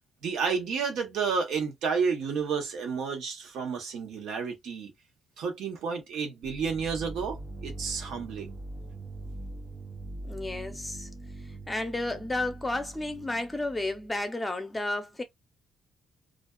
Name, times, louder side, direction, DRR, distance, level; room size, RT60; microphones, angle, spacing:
voice 1, 0.2-4.9 5.4-8.5, right 5 dB, 80° right, 0.9 m, -31 dB
sound 1, 6.4-14.1, right 2 dB, 35° right, 0.4 m, -42 dB
voice 2, 10.2-11.1 11.7-15.2, left 2 dB, 15° left, 0.6 m, -32 dB
2.5 x 2.2 x 2.2 m
cardioid pair, 90°, 0 cm